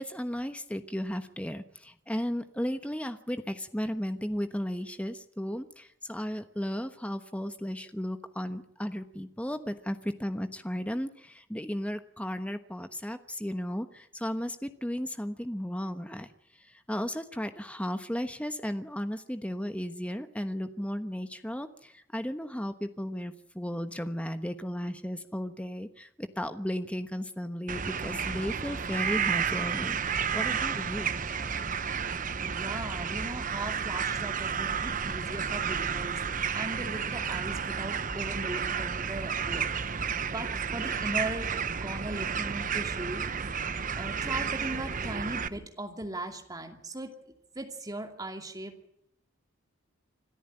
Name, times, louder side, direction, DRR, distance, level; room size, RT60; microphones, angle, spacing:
voice 1, 0.0-16.3 16.6-31.2, equal, 5° left, 9 dB, 1.2 m, -35 dB
sound 1, 27.7-45.5, right 6 dB, 40° right, 0.8 m, -31 dB
voice 2, 32.4-36.2 36.5-40.0 40.3-41.5 41.8-47.1 47.5-48.7, right 1 dB, 15° right, 4 dB, 2.5 m, -38 dB
25.5 x 14.0 x 8.9 m, 0.76 s
head